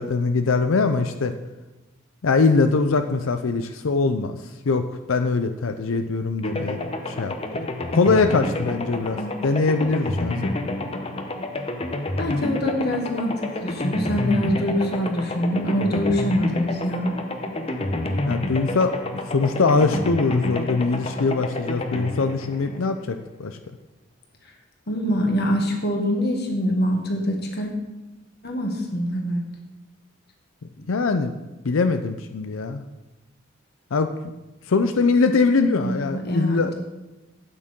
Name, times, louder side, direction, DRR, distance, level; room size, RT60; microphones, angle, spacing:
voice 1, 0.0-1.3 2.2-4.4 4.7-6.8 7.1-7.7 7.9-10.6 18.2-23.6 30.9-31.3 31.6-32.8 33.9-34.3 34.7-36.7, left 4 dB, 80° left, 8 dB, 0.6 m, -22 dB
sound 1, 6.4-23.4, left 1 dB, 30° left, 0.8 m, -29 dB
voice 2, 12.2-17.1 24.9-27.7 28.4-29.4 30.8-30.9 35.8-36.7, equal, 55° left, 2 dB, 1.7 m, -24 dB
12.5 x 8.8 x 3.7 m, 1.1 s
head